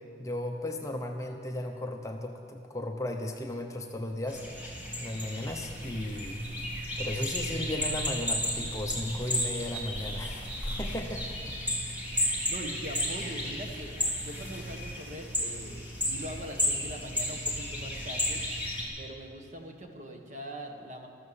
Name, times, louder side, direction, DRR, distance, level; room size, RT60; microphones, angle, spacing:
voice 1, 0.2-4.4 5.0-6.4 7.0-10.4 10.8-11.4 12.1-12.5, left 1 dB, 15° left, 3 dB, 0.8 m, -35 dB
sound 1, 4.3-18.9, left 1 dB, 10° right, 2.6 m, -33 dB
voice 2, 12.3-18.4 19.0-21.1, equal, 40° right, 3 dB, 1.5 m, -42 dB
13.5 x 13.5 x 7.1 m, 2.3 s
head